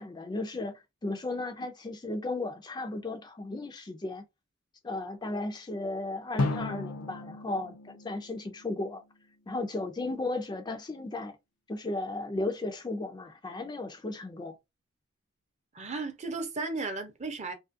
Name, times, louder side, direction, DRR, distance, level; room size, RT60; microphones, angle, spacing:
voice 1, 0.0-4.2 4.8-9.0 9.5-11.4 11.7-14.6, left 2 dB, 20° left, 0.4 m, -35 dB
Drum, 6.4-9.1, left 3 dB, 90° left, 0.5 m, -35 dB
voice 2, 15.7-17.5, right 3 dB, 35° right, 0.6 m, -35 dB
2.6 x 2.4 x 2.5 m
head